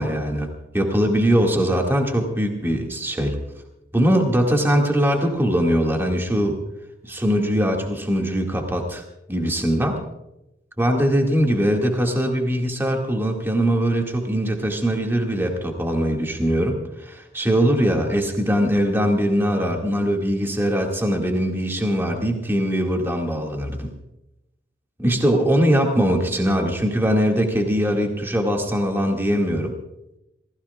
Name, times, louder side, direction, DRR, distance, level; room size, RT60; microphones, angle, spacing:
voice 1, 0.0-3.4 3.9-6.6 7.0-9.0 9.3-10.0 10.8-23.9 25.0-29.7, equal, 10° right, 1 dB, 2.0 m, -21 dB
27.5 x 16.5 x 2.4 m, 0.89 s
head